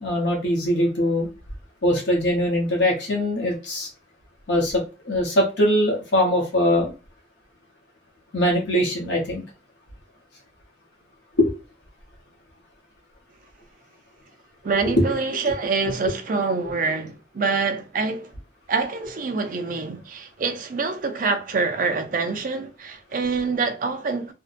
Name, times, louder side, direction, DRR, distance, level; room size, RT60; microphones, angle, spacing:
voice 1, 0.0-1.3 1.8-3.9 4.5-6.9 8.3-9.4 11.4-11.5 16.6-16.7, left 1 dB, 75° left, 0.9 m, -22 dB
voice 2, 14.6-18.3 18.7-24.3, right 4 dB, 45° right, 0.4 m, -26 dB
2.6 x 2.1 x 2.4 m
head